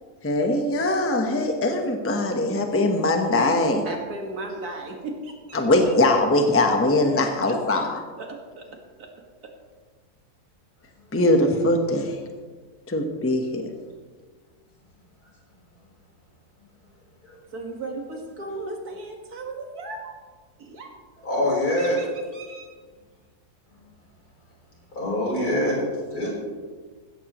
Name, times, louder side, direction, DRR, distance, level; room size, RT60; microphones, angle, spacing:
voice 1, 0.2-3.8 5.5-7.9 11.1-12.2 12.9-13.7, left 2 dB, 10° left, 4 dB, 0.9 m, -21 dB
voice 2, 3.8-5.9 7.2-7.6 8.2-8.7 9.0-9.1 9.4-9.5 17.5-20.1 20.6-20.9 21.8-22.7, right 2 dB, 75° right, 2 dB, 2.3 m, -36 dB
voice 3, 21.2-22.0 24.9-25.9 26.1-26.3, left 1 dB, 75° left, -4 dB, 4.6 m, -24 dB
15.5 x 14.0 x 3.1 m, 1.5 s
omnidirectional pair, 1.6 m